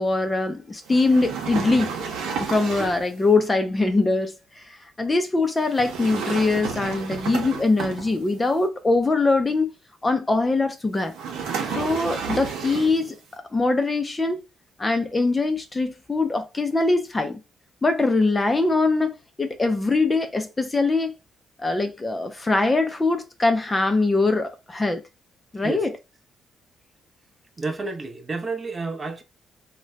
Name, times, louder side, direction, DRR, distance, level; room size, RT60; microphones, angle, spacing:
voice 1, 0.0-1.9 2.4-9.7 10.0-11.1 11.8-13.2 13.5-14.4 14.8-17.4 17.8-21.1 21.6-25.0 25.5-25.9, left 3 dB, 20° left, 0.5 m, -22 dB
sound 1, 0.9-3.1 5.7-8.4 11.1-13.1, right 6 dB, 85° right, 0.8 m, -31 dB
voice 2, 27.6-29.2, right 3 dB, 30° right, 0.7 m, -30 dB
2.6 x 2.2 x 3.2 m
cardioid pair, 90°, 0 cm